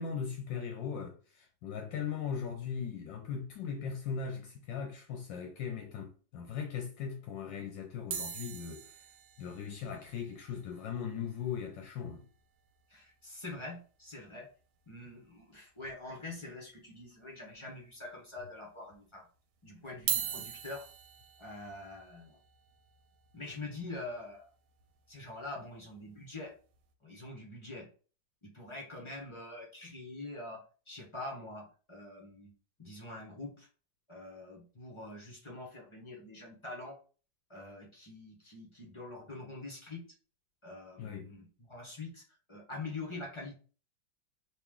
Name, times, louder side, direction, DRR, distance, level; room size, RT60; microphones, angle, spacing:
voice 1, 0.0-8.9 9.4-12.3 41.0-41.3, left 7 dB, 75° left, 1.2 m, -39 dB
sound 1, 8.1-12.4 12.7-12.8 13.0-13.2 13.6-13.7 15.1-15.2 15.8-16.4 16.9-17.0 17.8-17.9 19.9-26.0 26.6-26.8, right 8 dB, 90° right, 1.4 m, -42 dB
voice 2, 12.9-14.5 14.9-19.3 19.6-20.9 21.4-22.4 23.3-24.5 25.1-26.5 27.0-27.9 28.4-32.5 32.8-33.7 34.1-37.0 37.5-40.1 40.6-42.2 42.5-43.6, left 2 dB, 30° left, 0.6 m, -45 dB
3.1 x 3.0 x 3.5 m
omnidirectional pair, 2.2 m